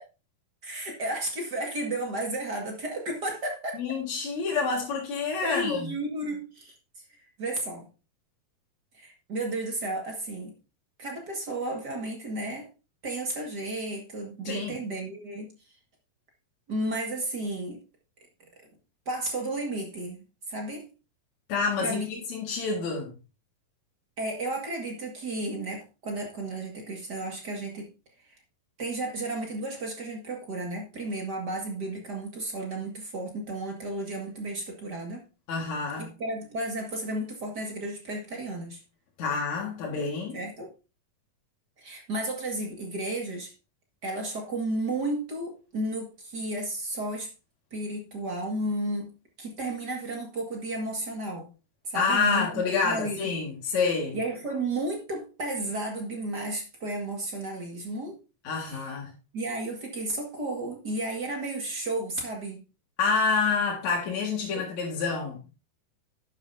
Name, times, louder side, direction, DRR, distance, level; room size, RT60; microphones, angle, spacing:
voice 1, 0.6-3.8 5.4-6.7 7.4-7.9 8.9-10.5 11.0-12.7 13.0-15.5 16.7-17.8 19.1-20.9 21.8-22.2 24.2-27.9 28.3-28.4 28.8-35.2 36.0-38.8 40.3-40.7 41.8-43.5 44.0-47.3 47.7-49.1 49.4-51.5 51.8-53.4 54.1-58.2 58.7-58.8 59.3-62.6 64.5-64.7, right 2 dB, 35° right, 2.0 m, -33 dB
voice 2, 3.7-5.9 14.4-14.8 21.5-23.1 35.5-36.1 39.2-40.4 51.9-54.2 58.4-59.1 63.0-65.5, left 5 dB, 55° left, 2.9 m, -28 dB
11.0 x 9.2 x 2.7 m
omnidirectional pair, 4.2 m